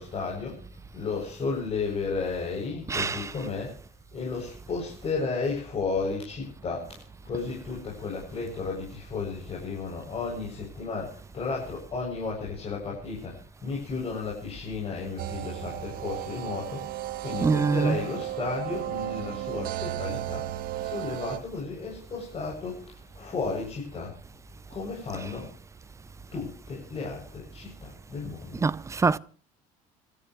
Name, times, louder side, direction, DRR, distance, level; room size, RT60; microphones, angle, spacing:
voice 1, 0.0-3.8 4.1-20.5 20.8-24.2 24.7-25.5 26.3-28.7, left 4 dB, 35° left, 7.7 m, -33 dB
voice 2, 2.9-3.3 17.4-18.0 28.5-29.2, right 4 dB, 15° right, 0.7 m, -24 dB
sound 1, 15.2-21.4, right 13 dB, 60° right, 1.8 m, -34 dB
28.5 x 14.0 x 3.2 m
cardioid pair, 120°, 17 cm